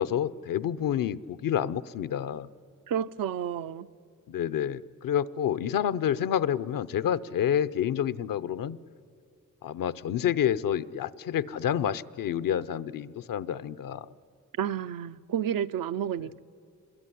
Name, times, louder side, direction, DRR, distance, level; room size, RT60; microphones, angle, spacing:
voice 1, 0.0-2.5 4.3-8.8 9.6-14.1, left 9 dB, 75° left, 0.7 m, -28 dB
voice 2, 2.9-3.9 14.6-16.4, right 9 dB, 85° right, 0.6 m, -30 dB
27.0 x 22.0 x 10.0 m
cardioid pair, 70°, 33 cm